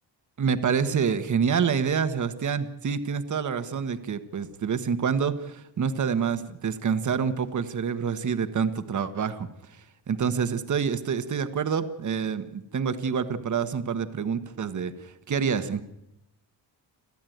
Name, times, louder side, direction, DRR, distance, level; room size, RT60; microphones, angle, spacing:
voice 1, 0.4-9.5 10.1-15.8, right 6 dB, 45° right, 11 dB, 1.3 m, -27 dB
29.5 x 11.0 x 9.3 m, 0.89 s
wide cardioid pair, 140°, 43 cm